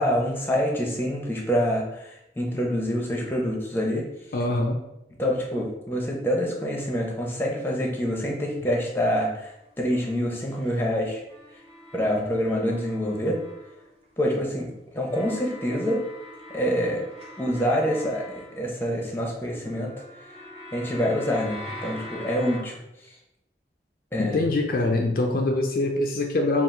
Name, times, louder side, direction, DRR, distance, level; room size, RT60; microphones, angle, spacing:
voice 1, 0.0-4.0 5.2-9.5 9.8-11.2 11.9-13.4 14.2-14.7 14.9-16.0 16.5-17.0 17.4-19.9 20.7-22.8 24.1-24.4, equal, 15° left, -1 dB, 0.7 m, -26 dB
voice 2, 4.3-4.8 24.2-26.6, left 2 dB, 55° left, 2 dB, 0.4 m, -24 dB
sound 1, 9.1-10.8 11.3-14.3 15.0-19.2 19.6-22.6, left 1 dB, 35° right, 0.8 m, -44 dB
3.8 x 2.5 x 4.3 m, 0.88 s
head